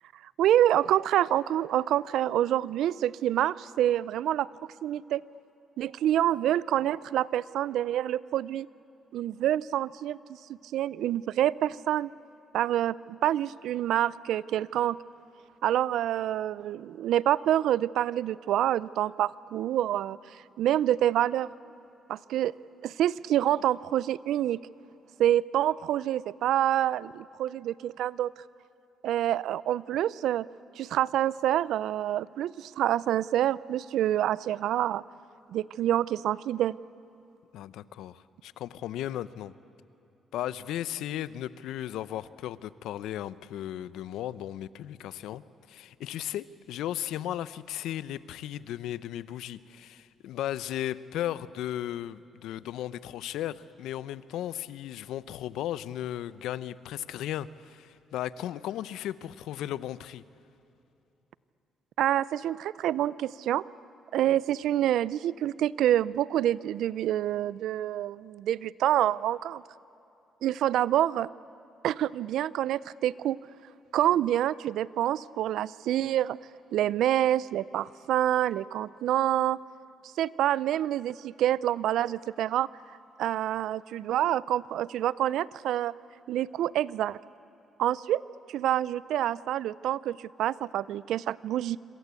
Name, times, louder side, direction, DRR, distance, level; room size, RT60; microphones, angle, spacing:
voice 1, 0.4-4.5 4.8-5.2 5.8-8.7 9.1-10.2 10.7-12.1 12.5-15.0 15.6-20.2 20.6-21.5 22.1-22.5 22.8-24.6 25.2-28.3 29.0-30.4 30.8-35.0 35.5-36.8 62.0-63.6 64.1-69.6 70.4-71.3 71.8-73.4 73.9-76.4 76.7-79.6 80.2-82.7 83.2-85.9 86.3-87.2 87.8-88.2 88.5-91.8, right 12 dB, 80° right, 20 dB, 0.5 m, -27 dB
voice 2, 37.5-39.5 40.3-45.4 45.7-60.2, left 12 dB, 85° left, 16 dB, 0.7 m, -36 dB
26.5 x 26.0 x 8.3 m, 2.9 s
cardioid pair, 90°, 0 cm